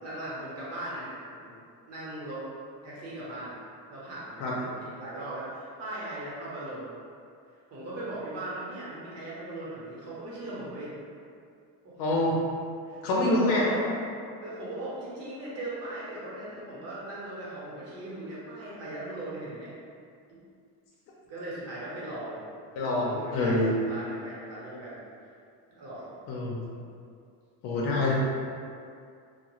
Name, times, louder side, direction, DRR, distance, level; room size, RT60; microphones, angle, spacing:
voice 1, 0.0-1.6 1.9-2.4 2.8-3.6 3.9-7.0 7.7-10.9 11.8-12.1 12.8-13.9 14.4-19.7 20.3-20.4 21.3-22.5 22.7-25.0 25.7-26.1 26.7-26.8, right 1 dB, 40° right, -7 dB, 0.8 m, -38 dB
voice 2, 12.0-12.3 13.0-13.6 22.8-23.7 26.3-26.6 27.6-28.1, left 2 dB, 90° left, -5 dB, 0.6 m, -26 dB
2.4 x 2.1 x 3.0 m, 2.3 s
cardioid pair, 140°, 39 cm